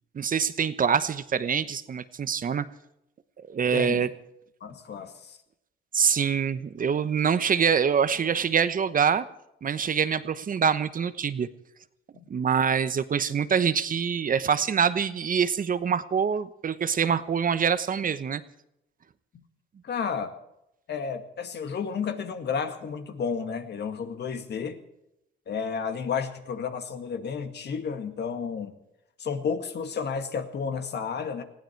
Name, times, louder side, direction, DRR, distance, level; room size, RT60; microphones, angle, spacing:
voice 1, 0.1-2.6 3.5-4.1 5.9-9.2 9.6-11.5 12.3-18.4, right 7 dB, 45° right, 13 dB, 1.0 m, -25 dB
voice 2, 3.7-4.1 4.6-5.4 12.1-12.3 19.3-19.4 19.8-20.3 20.9-24.8 25.5-28.7 29.2-31.4, left 6 dB, 60° left, 7 dB, 2.0 m, -32 dB
20.0 x 15.5 x 4.6 m, 0.83 s
cardioid pair, 90°, 20 cm